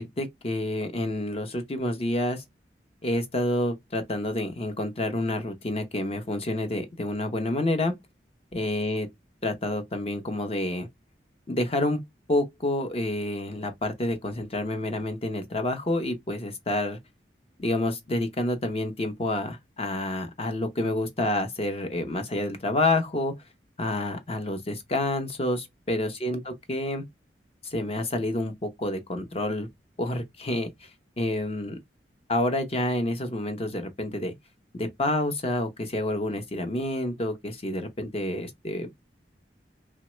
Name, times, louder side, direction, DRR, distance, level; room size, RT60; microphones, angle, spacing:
voice 1, 0.0-2.4 3.0-7.9 8.5-9.1 9.4-10.9 11.5-12.0 12.3-17.0 17.6-23.3 23.8-27.0 27.7-29.7 30.0-30.7 31.2-31.8 32.3-34.3 34.7-39.0, left 1 dB, 35° left, 0.6 m, -28 dB
2.9 x 2.2 x 2.9 m
head